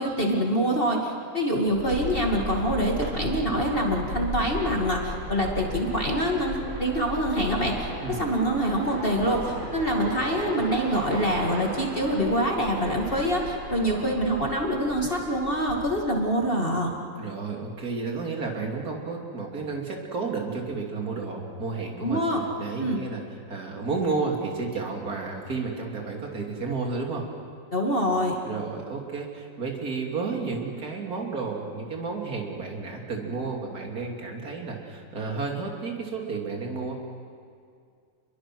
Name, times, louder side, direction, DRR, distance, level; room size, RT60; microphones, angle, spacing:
voice 1, 0.0-16.9 22.0-22.4 22.8-23.0 27.7-28.3, equal, 30° left, 0 dB, 2.4 m, -25 dB
sound 1, 1.7-15.8, equal, 80° right, 6.6 m, -36 dB
voice 2, 17.2-22.2 22.6-23.2 23.5-27.3 28.4-36.9, right 4 dB, 50° right, 0 dB, 3.4 m, -32 dB
29.0 x 22.5 x 6.2 m, 2.3 s
omnidirectional pair, 2.1 m